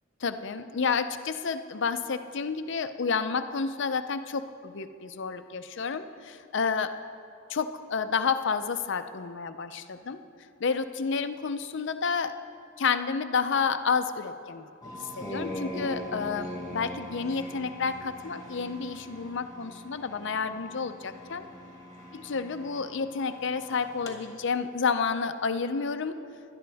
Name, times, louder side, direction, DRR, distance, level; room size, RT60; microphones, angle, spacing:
voice 1, 0.2-6.9 7.5-10.2 10.6-12.3 12.8-14.7 14.9-21.5 22.3-26.2, left 5 dB, 65° left, 10 dB, 0.6 m, -30 dB
sound 1, 14.8-24.1, left 1 dB, 20° left, 1.8 m, -41 dB
18.5 x 12.0 x 3.5 m, 2.4 s
head